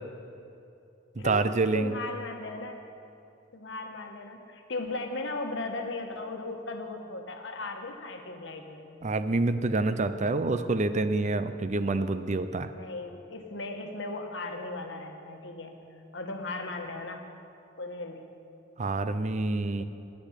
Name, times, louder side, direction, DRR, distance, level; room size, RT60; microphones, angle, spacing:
voice 1, 1.2-1.9 9.0-12.7 18.8-19.8, right 3 dB, 35° right, 11 dB, 0.5 m, -27 dB
voice 2, 1.7-2.8 3.5-9.0 12.7-15.8 16.1-17.3 17.8-18.3 19.8-19.9, left 2 dB, 65° left, 4 dB, 1.3 m, -37 dB
10.5 x 8.2 x 9.9 m, 2.7 s
head